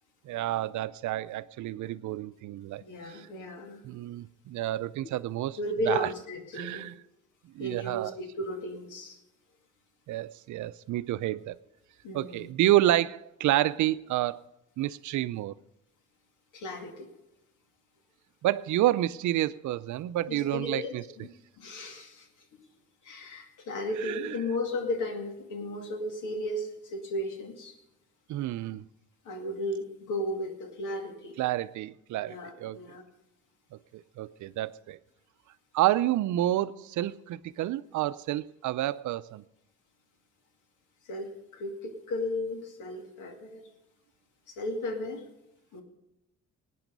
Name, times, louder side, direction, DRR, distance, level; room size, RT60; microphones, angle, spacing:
voice 1, 0.2-3.3 3.8-5.6 5.9-6.1 6.5-6.9 7.5-8.1 10.1-11.6 12.1-14.4 14.8-15.5 18.4-21.0 24.0-24.4 28.3-28.8 31.4-32.8 33.7-35.0 35.7-39.4, right 14 dB, 75° right, 16 dB, 0.6 m, -29 dB
voice 2, 2.8-3.8 5.6-6.8 7.6-9.2 12.0-12.5 16.5-17.1 20.3-21.3 21.6-22.3 22.6-22.7 23.0-27.8 29.2-31.4 32.2-33.0 41.0-43.6 44.5-45.2 45.7-45.8, left 1 dB, 85° left, 4 dB, 2.4 m, -35 dB
18.0 x 9.4 x 5.3 m, 0.86 s
cardioid pair, 90°, 30 cm